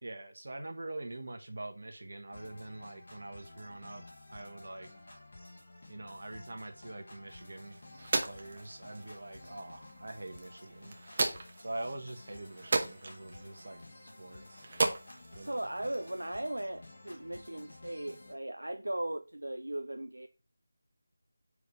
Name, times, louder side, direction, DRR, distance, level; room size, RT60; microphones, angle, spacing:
voice 1, 0.0-4.0 4.3-4.9 5.9-7.8 8.3-11.0 11.6-13.8 14.2-14.6 15.3-15.6, right 2 dB, 55° right, 1.3 m, -44 dB
sound 1, 2.3-18.3, left 2 dB, 50° left, 2.2 m, -53 dB
sound 2, 7.3-16.3, right 3 dB, 35° right, 1.0 m, -37 dB
voice 2, 15.3-20.3, right 1 dB, 75° right, 0.4 m, -38 dB
4.8 x 4.1 x 5.2 m
figure-of-eight pair, 165°, 0 cm